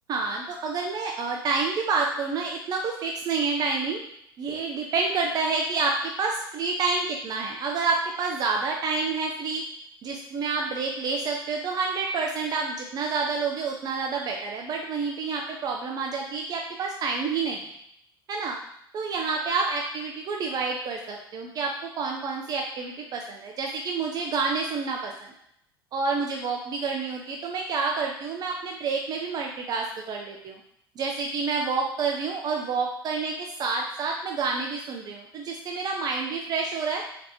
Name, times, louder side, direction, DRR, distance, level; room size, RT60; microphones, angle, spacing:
voice 1, 0.1-4.0 4.4-9.6 10.0-17.7 18.3-18.6 18.9-25.1 25.9-30.6 31.0-37.0, right 4 dB, 35° right, 1 dB, 0.4 m, -28 dB
3.3 x 2.9 x 2.9 m, 0.75 s
figure-of-eight pair, 70°, 12 cm